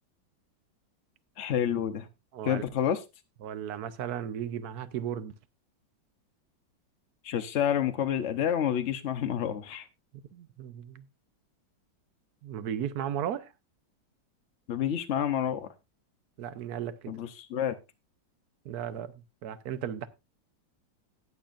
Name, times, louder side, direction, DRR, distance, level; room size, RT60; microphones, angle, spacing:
voice 1, 1.4-2.1 2.4-3.0 7.2-9.9 14.7-15.7 17.1-17.8, left 9 dB, 65° left, 0.7 m, -29 dB
voice 2, 2.3-2.6 3.4-5.3 10.3-11.0 12.4-13.5 16.4-17.1 18.6-19.1 19.4-20.1, right 9 dB, 60° right, 1.2 m, -35 dB
19.0 x 7.2 x 2.5 m
omnidirectional pair, 2.1 m